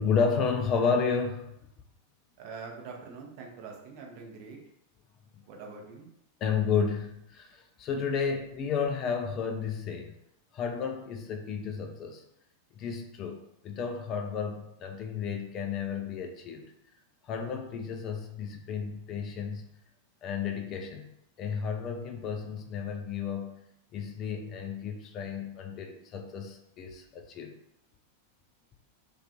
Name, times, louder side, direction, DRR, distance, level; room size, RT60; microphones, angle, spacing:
voice 1, 0.0-1.5 6.4-10.1 10.5-12.2 12.8-13.4 13.6-16.7 17.3-19.6 20.2-21.1 21.4-23.5 23.9-27.5, left 6 dB, 35° left, 4 dB, 0.3 m, -32 dB
voice 2, 2.4-4.6 5.5-6.1, right 4 dB, 45° right, 0 dB, 0.5 m, -44 dB
2.4 x 2.3 x 2.2 m, 0.76 s
figure-of-eight pair, 90°, 0 cm